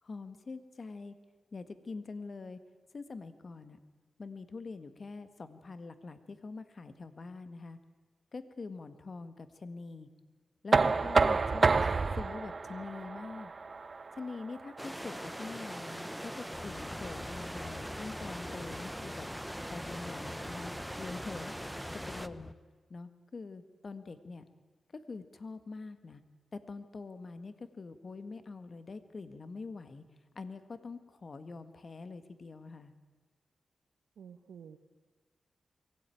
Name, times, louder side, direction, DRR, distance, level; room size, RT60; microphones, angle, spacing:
voice 1, 0.0-1.1 1.5-2.6 2.9-3.8 4.2-7.8 8.3-10.1 10.6-13.5 14.1-19.3 19.7-22.5 22.9-24.4 24.9-26.2 26.5-30.0 30.3-32.9, left 4 dB, 50° left, 11 dB, 1.7 m, -44 dB
Knock, 10.7-16.5, right 4 dB, 45° right, 0.8 m, -30 dB
sound 1, 14.8-22.3, equal, 5° right, 1.0 m, -42 dB
sound 2, 16.5-22.5, left 2 dB, 20° left, 0.9 m, -47 dB
voice 2, 34.2-34.8, right 7 dB, 90° right, 5 dB, 1.1 m, -50 dB
23.5 x 17.0 x 9.2 m, 1.4 s
cardioid pair, 65°, 0 cm